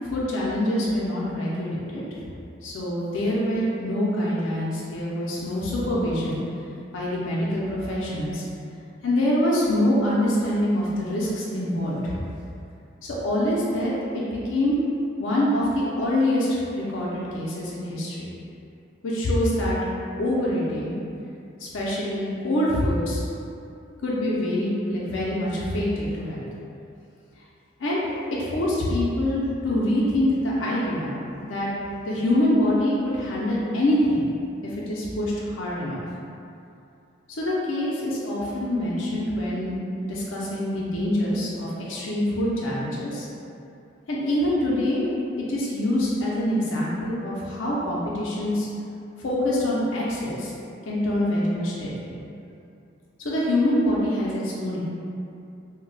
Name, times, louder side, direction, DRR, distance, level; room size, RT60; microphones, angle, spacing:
voice 1, 0.0-2.0 2.6-6.4 6.9-8.4 9.0-12.2 13.0-14.8 15.1-18.3 19.0-19.8 20.2-20.9 21.6-23.2 24.0-26.5 27.8-28.0 28.4-31.2 31.5-31.7 32.0-34.3 34.6-36.0 37.3-39.8 40.1-43.3 44.1-45.2 45.5-48.7 49.2-50.5 50.9-52.1 53.2-54.8, left 1 dB, 75° left, -6 dB, 0.5 m, -25 dB
2.2 x 2.0 x 3.8 m, 2.6 s
head